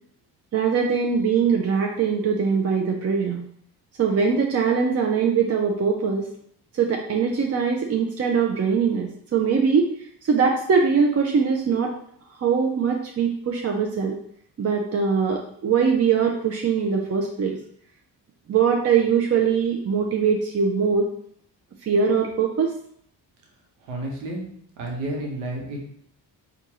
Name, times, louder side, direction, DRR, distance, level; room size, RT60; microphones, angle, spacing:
voice 1, 0.5-3.4 4.0-6.3 6.7-9.9 10.2-11.9 12.4-14.2 14.6-17.6 18.5-21.1 21.8-22.7, right 6 dB, 30° right, 2 dB, 0.5 m, -22 dB
voice 2, 23.9-24.4 24.8-25.9, right 1 dB, 80° right, 0 dB, 1.0 m, -30 dB
4.6 x 2.4 x 2.8 m, 0.66 s
hypercardioid pair, 40°, 49 cm